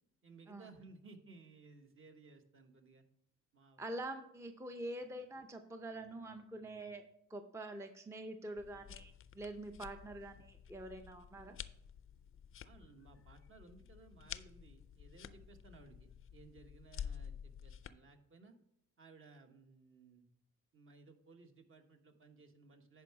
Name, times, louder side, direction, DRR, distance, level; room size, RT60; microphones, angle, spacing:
voice 1, 0.2-3.0 3.5-3.8 12.6-18.6 19.0-20.3 20.7-23.0, right 3 dB, 45° right, 5 dB, 1.2 m, -59 dB
voice 2, 3.8-7.0 7.3-11.6, right 1 dB, 10° right, 7 dB, 0.6 m, -46 dB
sound 1, 8.6-17.9, left 8 dB, 45° left, 0.5 m, -51 dB
10.0 x 4.7 x 4.7 m, 0.75 s
cardioid pair, 90°, 30 cm